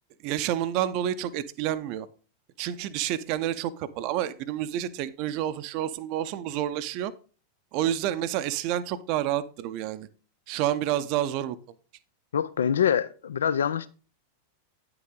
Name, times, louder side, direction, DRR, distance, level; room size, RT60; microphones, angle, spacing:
voice 1, 0.2-2.1 2.6-7.1 7.7-10.1 10.5-11.6, right 11 dB, 45° right, 0.5 m, -29 dB
voice 2, 12.3-13.9, left 8 dB, 65° left, 0.4 m, -25 dB
9.3 x 5.8 x 3.8 m
figure-of-eight pair, 90°, 0 cm